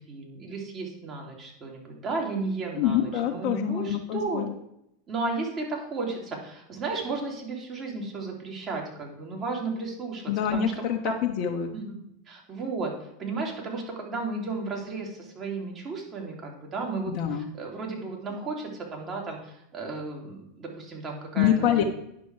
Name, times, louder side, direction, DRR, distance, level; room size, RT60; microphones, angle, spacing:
voice 1, 0.0-4.4 5.1-10.2 10.5-10.7 11.0-11.1 11.7-11.8 12.3-12.9 13.2-21.9, right 3 dB, 35° right, 0 dB, 3.1 m, -34 dB
voice 2, 2.7-4.5 10.3-11.7 17.1-17.5 21.4-21.8, left 10 dB, 55° left, 1 dB, 0.9 m, -26 dB
9.6 x 6.2 x 4.8 m, 0.78 s
hypercardioid pair, 95°, 0 cm